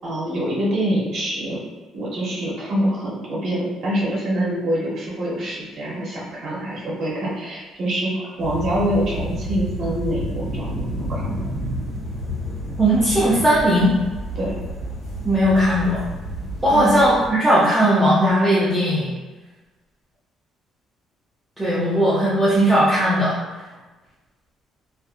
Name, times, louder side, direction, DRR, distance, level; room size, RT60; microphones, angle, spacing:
voice 1, 0.0-1.6 1.9-11.4 14.3-14.6 16.7-17.0, equal, 45° right, -5 dB, 0.7 m, -25 dB
sound 1, 8.4-17.3, equal, 50° left, 1.3 m, -30 dB
voice 2, 12.8-13.9 15.2-16.0 16.6-19.1 21.6-23.4, equal, 5° right, -10 dB, 0.4 m, -18 dB
2.6 x 2.4 x 2.4 m, 1.2 s
cardioid pair, 170°, 0 cm